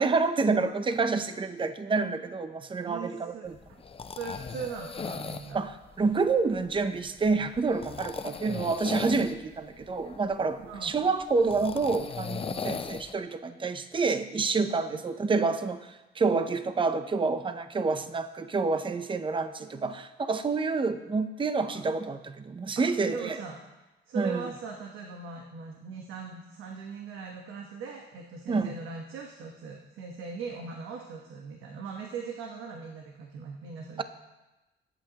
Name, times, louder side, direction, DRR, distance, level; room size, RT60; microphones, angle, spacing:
voice 1, 0.0-3.5 5.5-23.4 24.2-24.4 28.5-28.8, right 4 dB, 25° right, 10 dB, 0.7 m, -28 dB
voice 2, 2.8-3.5 4.1-5.6 10.6-11.0 12.5-12.9 14.9-15.0 21.7-21.9 22.7-23.6 24.1-34.0, right 5 dB, 85° right, 1 dB, 1.2 m, -40 dB
sound 1, 3.5-13.2, left 5 dB, 30° left, 0.6 m, -39 dB
17.5 x 8.4 x 3.0 m, 1.0 s
cardioid pair, 90°, 20 cm